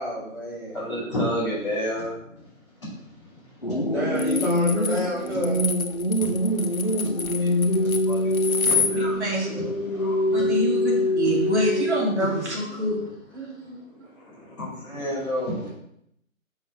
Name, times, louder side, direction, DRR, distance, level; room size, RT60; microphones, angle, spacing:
voice 1, 0.0-0.8 3.8-5.6, equal, ahead, -26 dB, 1.8 m, -29 dB
voice 2, 0.7-2.5 2.8-3.6 6.2-11.5 12.4-12.5 13.0-13.1 13.9-15.7, equal, 20° left, -10 dB, 2.9 m, -33 dB
sound 1, 3.6-12.6, left 1 dB, 45° left, 0.4 m, -25 dB
sound 2, 4.2-8.9, left 5 dB, 80° left, 1.1 m, -28 dB
voice 3, 8.9-9.5 10.3-13.0 13.3-13.8, equal, 55° right, -4 dB, 2.8 m, -26 dB
6.4 x 6.2 x 4.5 m, 0.74 s
hypercardioid pair, 180°, 42 cm